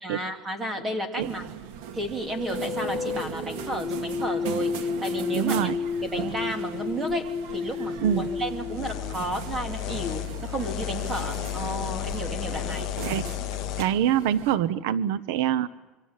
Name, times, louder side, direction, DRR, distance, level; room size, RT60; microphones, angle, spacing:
voice 1, 0.0-1.4 1.9-5.7 6.0-12.9, right 1 dB, 15° right, 6 dB, 2.9 m, -32 dB
sound 1, 1.2-14.6, right 8 dB, 90° right, 2.4 m, -39 dB
sound 2, 2.3-9.7, left 6 dB, 10° left, 1.3 m, -32 dB
voice 2, 5.3-5.7 8.0-8.3 13.0-13.2 13.8-15.7, right 10 dB, 70° right, 16 dB, 1.0 m, -24 dB
sound 3, 8.0-13.8, left 18 dB, 45° left, 0.9 m, -33 dB
27.5 x 24.5 x 7.5 m, 1.1 s
cardioid pair, 180°, 0 cm